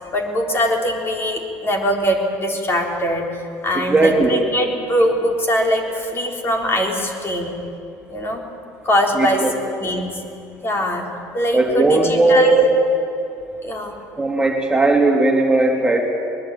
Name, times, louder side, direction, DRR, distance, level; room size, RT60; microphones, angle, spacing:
voice 1, 0.1-3.2 3.6-7.6 8.1-8.4 8.8-9.5 9.8-10.1 10.6-11.1 11.3-12.7 13.6-13.9, equal, 30° left, 2 dB, 3.9 m, -21 dB
voice 2, 3.9-4.3 9.2-9.5 11.5-12.8 14.2-16.0, right 2 dB, 10° right, 1 dB, 3.1 m, -17 dB
21.5 x 20.5 x 9.0 m, 2.5 s
supercardioid pair, 95°, 8 cm